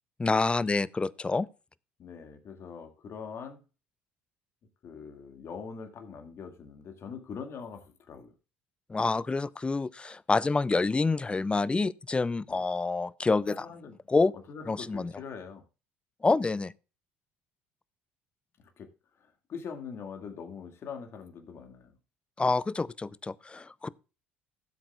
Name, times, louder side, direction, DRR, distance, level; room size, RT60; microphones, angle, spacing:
voice 1, 0.2-1.5 8.9-13.7 14.1-14.3 14.7-15.1 16.2-16.7 22.4-23.9, left 3 dB, 20° left, 0.5 m, -27 dB
voice 2, 2.0-3.6 4.8-8.3 12.5-12.7 13.5-14.0 14.5-15.6 18.6-18.9 19.2-21.9, left 6 dB, 50° left, 2.1 m, -43 dB
16.5 x 7.7 x 2.4 m
hypercardioid pair, 60°, 6 cm